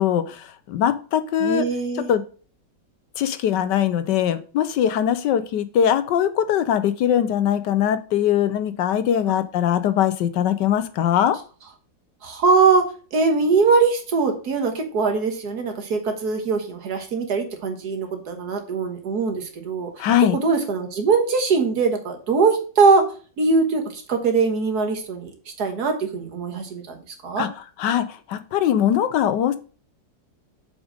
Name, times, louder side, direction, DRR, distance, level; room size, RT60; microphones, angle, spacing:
voice 1, 0.0-1.6 2.1-2.2 3.2-11.4 20.0-20.4 27.4-27.5 27.8-29.6, left 10 dB, 75° left, 12 dB, 1.3 m, -21 dB
voice 2, 1.4-2.1 9.3-9.4 12.2-12.8 13.1-19.9 20.3-23.0 23.4-25.3 25.6-27.0 27.2-27.4, right 4 dB, 60° right, 5 dB, 1.8 m, -21 dB
7.1 x 5.1 x 5.1 m, 0.38 s
omnidirectional pair, 1.9 m